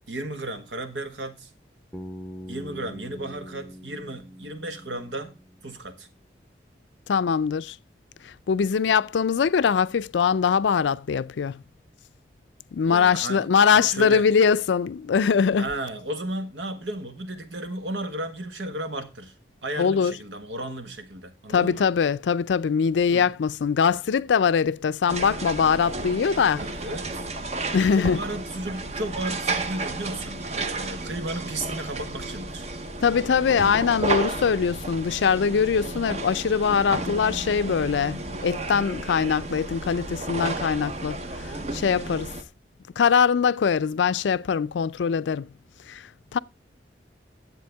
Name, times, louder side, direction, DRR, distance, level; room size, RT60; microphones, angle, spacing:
voice 1, 0.1-1.5 2.5-5.3 5.6-6.1 12.9-13.5 13.7-14.3 15.6-19.3 19.6-21.9 23.1-23.3 26.5-27.3 27.9-32.7, right 1 dB, 85° right, 1.5 m, -34 dB
Bass guitar, 1.9-5.9, equal, 5° left, 0.7 m, -42 dB
voice 2, 7.1-7.8 8.5-11.6 12.7-15.7 19.8-20.1 21.5-26.6 27.7-28.2 33.0-42.3 43.0-45.5 45.9-46.0 46.3-46.4, left 6 dB, 85° left, 0.4 m, -22 dB
sound 1, 25.1-42.4, right 2 dB, 35° right, 0.8 m, -32 dB
10.5 x 7.8 x 3.4 m
head